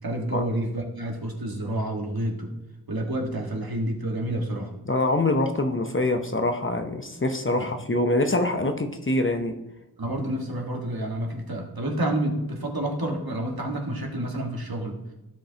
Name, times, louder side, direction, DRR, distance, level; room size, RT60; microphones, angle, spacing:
voice 1, 0.0-2.5 2.9-4.7 7.6-7.7 10.0-15.0, right 1 dB, 70° right, 0 dB, 1.6 m, -29 dB
voice 2, 4.8-9.6, left 2 dB, 35° left, 6 dB, 0.7 m, -24 dB
15.0 x 5.2 x 2.8 m, 0.99 s
wide cardioid pair, 60°, 38 cm